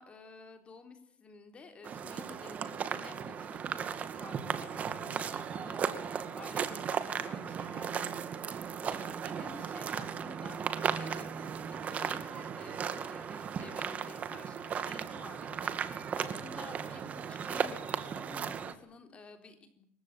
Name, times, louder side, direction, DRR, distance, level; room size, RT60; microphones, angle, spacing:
voice 1, 0.0-19.8, left 4 dB, 25° left, 7 dB, 3.8 m, -52 dB
sound 1, 1.8-18.7, right 7 dB, 30° right, 2.2 m, -36 dB
27.5 x 16.0 x 9.2 m, 0.65 s
cardioid pair, 155°, 5 cm